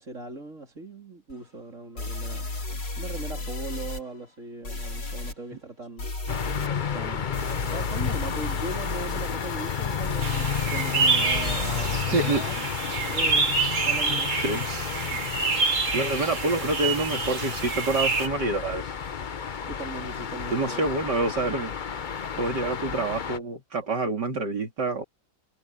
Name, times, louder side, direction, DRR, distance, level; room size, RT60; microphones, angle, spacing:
voice 1, 0.0-6.1 6.9-12.6 13.1-14.5 15.1-15.2 19.7-20.9 22.3-22.4, right 3 dB, 40° right, 4.0 m, -39 dB
sound 1, 1.3-1.4 2.0-4.0 4.6-5.3 6.0-6.7 7.3-12.0, left 2 dB, 65° left, 5.4 m, -34 dB
sound 2, 6.3-23.4, left 7 dB, 85° left, 0.4 m, -32 dB
sound 3, 10.2-18.3, right 4 dB, 85° right, 4.2 m, -27 dB
voice 2, 12.1-12.4 14.4-14.6 15.9-18.9 20.5-21.7 22.3-25.0, right 2 dB, 60° right, 3.3 m, -27 dB
omnidirectional pair, 2.1 m